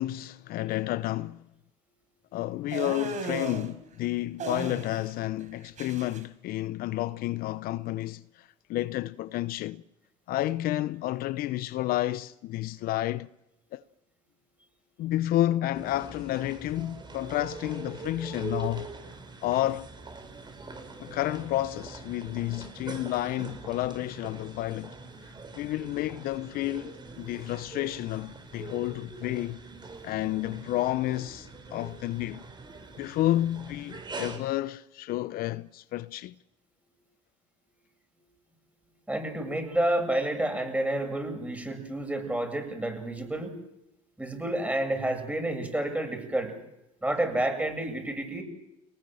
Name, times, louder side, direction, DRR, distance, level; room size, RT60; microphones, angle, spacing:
voice 1, 0.0-1.4 2.3-9.8 10.3-13.3 13.7-13.8 15.0-18.9 19.4-19.9 21.0-24.9 25.5-29.6 30.0-32.4 33.0-36.4, left 15 dB, 60° left, 0.9 m, -30 dB
sound 1, 2.7-3.7 4.4-5.1 5.4-6.2, right 4 dB, 45° right, 5.0 m, -35 dB
sound 2, 15.7-34.4, right 4 dB, 25° right, 5.8 m, -43 dB
voice 2, 39.1-43.5 44.2-46.6 47.0-48.4, right 1 dB, 10° right, 7.8 m, -29 dB
29.0 x 19.5 x 7.8 m
supercardioid pair, 80°, 17 cm